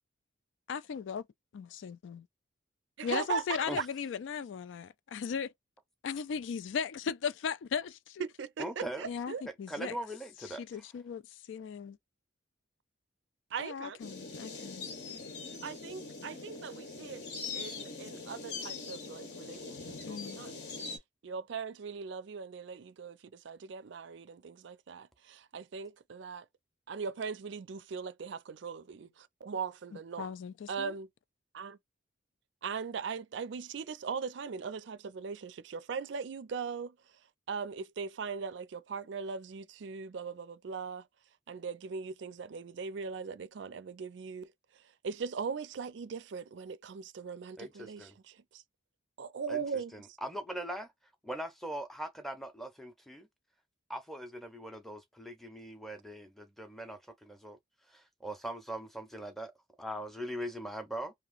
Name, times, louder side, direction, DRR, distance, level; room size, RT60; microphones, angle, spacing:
voice 1, 0.7-1.2 1.5-2.2 3.0-5.5 6.0-8.2 9.0-10.0 10.4-12.0 13.6-14.9 20.0-20.4 29.9-30.9, left 6 dB, 70° left, 0.3 m, -37 dB
voice 2, 3.0-3.4 3.8-3.9 8.2-9.4 13.5-14.0 15.6-17.2 17.5-20.5 21.2-26.4 26.9-30.3 30.7-31.1 31.5-31.8 32.6-36.9 37.5-41.1 41.5-44.5 45.0-48.6 49.2-49.9, right 5 dB, 65° right, 0.4 m, -39 dB
voice 3, 8.6-9.0 9.7-10.6 47.6-48.1 49.5-49.6 49.9-50.9 51.2-53.3 53.9-57.6 57.9-59.5 59.8-61.1, right 1 dB, ahead, 0.6 m, -41 dB
sound 1, 14.0-21.0, left 4 dB, 55° left, 0.9 m, -42 dB
2.9 x 2.4 x 2.4 m
head